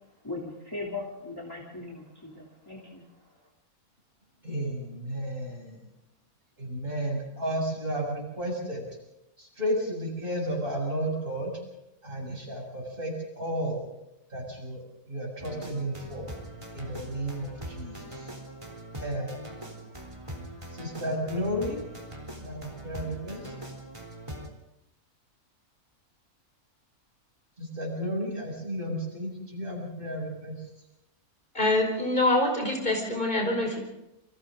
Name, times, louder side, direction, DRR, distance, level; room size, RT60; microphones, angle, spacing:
voice 1, 0.2-3.1, left 3 dB, 15° left, -3 dB, 3.0 m, -39 dB
voice 2, 4.4-5.8 6.6-8.8 9.4-11.5 12.0-13.8 14.3-14.8 15.1-16.3 16.7-18.3 19.0-19.3 20.7-21.8 22.4-23.4 27.6-30.6, equal, 35° right, -1 dB, 7.5 m, -32 dB
sound 1, 15.4-24.5, right 1 dB, 20° right, 3.3 m, -42 dB
voice 3, 31.5-33.8, left 2 dB, 35° left, 1 dB, 5.0 m, -25 dB
29.0 x 24.0 x 3.8 m, 0.90 s
omnidirectional pair, 1.5 m